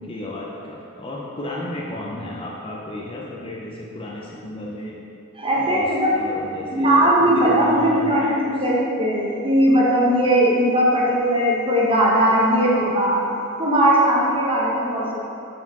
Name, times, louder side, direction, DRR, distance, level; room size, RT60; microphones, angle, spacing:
voice 1, 0.0-5.0 5.6-8.5, left 1 dB, 25° left, -3 dB, 0.6 m, -33 dB
voice 2, 5.4-6.2 6.7-13.2 13.6-15.2, right 1 dB, 25° right, -5 dB, 1.2 m, -19 dB
6.0 x 4.6 x 6.0 m, 2.7 s
head